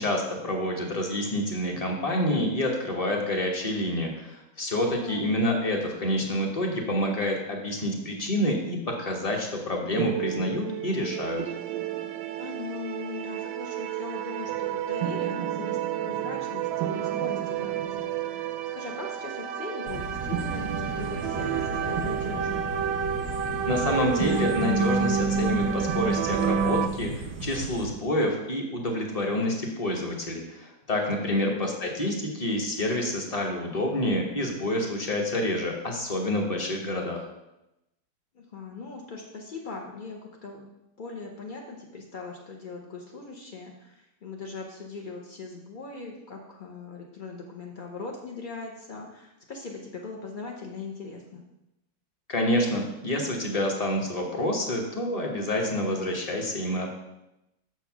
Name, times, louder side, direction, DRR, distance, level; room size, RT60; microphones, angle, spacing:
voice 1, 0.0-11.4 23.7-37.3 52.3-56.9, left 1 dB, 25° left, 1 dB, 0.9 m, -28 dB
sound 1, 10.0-26.9, right 7 dB, 75° right, 1.1 m, -29 dB
voice 2, 12.3-22.7 31.3-31.7 38.3-40.7 41.0-51.4, left 4 dB, 60° left, -1 dB, 0.5 m, -40 dB
sound 2, 19.9-27.9, right 3 dB, 50° right, 0.6 m, -36 dB
6.7 x 4.5 x 6.0 m, 0.92 s
omnidirectional pair, 2.0 m